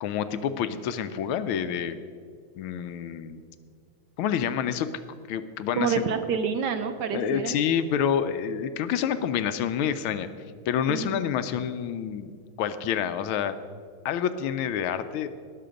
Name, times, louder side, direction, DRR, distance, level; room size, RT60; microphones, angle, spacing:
voice 1, 0.0-2.0 2.6-3.4 4.2-4.9 5.3-6.0 7.1-10.3 10.7-13.5 14.0-15.3, left 8 dB, 85° left, 11 dB, 1.5 m, -28 dB
voice 2, 5.7-7.6 10.9-11.2, right 6 dB, 70° right, 8 dB, 1.1 m, -28 dB
18.5 x 6.6 x 5.1 m, 2.1 s
omnidirectional pair, 2.3 m